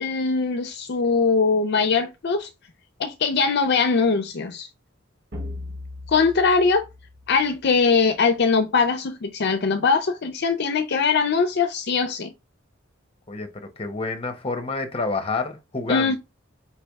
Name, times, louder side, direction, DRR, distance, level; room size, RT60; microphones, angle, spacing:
voice 1, 0.0-2.5 3.0-4.7 6.1-6.9 7.3-12.3 15.9-16.2, left 4 dB, 55° left, 0.5 m, -21 dB
sound 1, 5.3-7.9, left 2 dB, 60° right, 1.2 m, -38 dB
voice 2, 13.3-16.2, left 3 dB, 30° left, 0.9 m, -28 dB
4.5 x 3.3 x 3.4 m
head